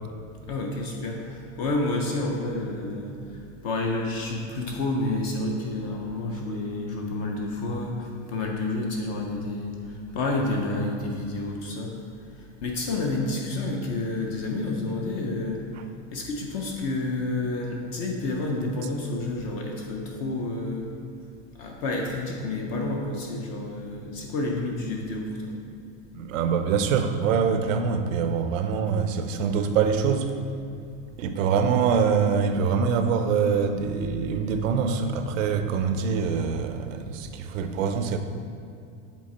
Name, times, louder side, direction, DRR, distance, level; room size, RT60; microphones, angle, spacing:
voice 1, 0.4-11.9 12.3-15.6 16.1-20.9 21.5-25.6, left 2 dB, 30° left, 0 dB, 0.4 m, -29 dB
voice 2, 26.1-30.3 31.2-38.2, right 6 dB, 85° right, 8 dB, 0.7 m, -24 dB
7.4 x 3.6 x 4.2 m, 2.5 s
supercardioid pair, 170°, 38 cm